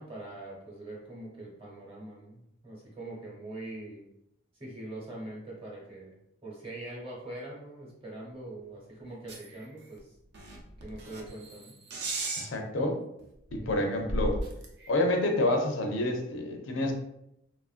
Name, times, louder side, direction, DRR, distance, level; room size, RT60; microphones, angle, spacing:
voice 1, 0.0-4.1 4.6-10.0 10.8-11.8 13.6-13.9, right 1 dB, 30° right, -3 dB, 0.9 m, -43 dB
sound 1, 9.3-9.6 10.0-10.1 10.3-12.5 13.2-13.3 13.5-14.9, right 1 dB, 55° right, 0.5 m, -35 dB
voice 2, 12.4-13.0 13.5-14.4 14.9-16.9, left 1 dB, 70° left, 3 dB, 0.5 m, -28 dB
3.0 x 2.4 x 2.4 m, 0.79 s
head